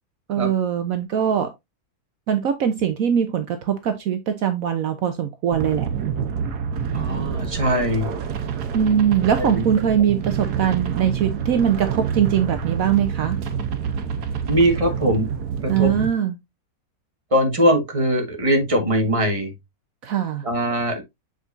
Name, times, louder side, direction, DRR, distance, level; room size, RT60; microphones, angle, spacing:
voice 1, 0.3-1.5 2.3-5.9 8.7-13.4 15.7-16.4 20.0-20.4, right 9 dB, 70° right, 1.1 m, -21 dB
sound 1, 5.5-16.1, right 7 dB, 90° right, 1.5 m, -27 dB
voice 2, 6.9-8.1 9.4-9.6 14.5-15.2 15.6-15.9 17.3-19.5 20.4-21.0, equal, 20° right, 1.6 m, -21 dB
7.8 x 5.0 x 2.6 m
omnidirectional pair, 1.6 m